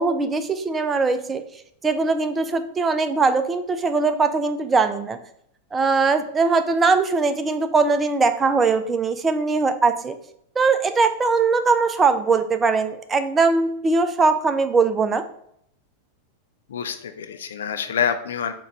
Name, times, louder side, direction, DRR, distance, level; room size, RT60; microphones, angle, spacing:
voice 1, 0.0-1.4 1.8-5.2 5.7-10.2 10.6-15.2, right 4 dB, 15° right, 9 dB, 0.4 m, -21 dB
voice 2, 16.7-18.5, left 7 dB, 65° left, 9 dB, 0.4 m, -26 dB
4.4 x 2.2 x 4.1 m, 0.71 s
figure-of-eight pair, 90°, 0 cm